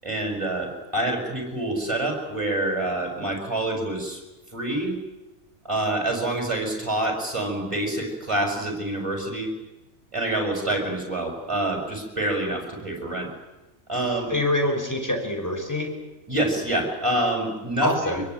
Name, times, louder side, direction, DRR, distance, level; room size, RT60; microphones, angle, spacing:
voice 1, 0.0-4.2 4.5-5.0 5.6-9.5 10.1-13.3 13.9-14.3 16.3-18.2, right 1 dB, 20° right, 3 dB, 6.3 m, -27 dB
voice 2, 14.3-15.9 17.8-18.2, left 1 dB, 10° left, 3 dB, 5.1 m, -25 dB
24.5 x 23.0 x 9.3 m, 1.0 s
omnidirectional pair, 1.4 m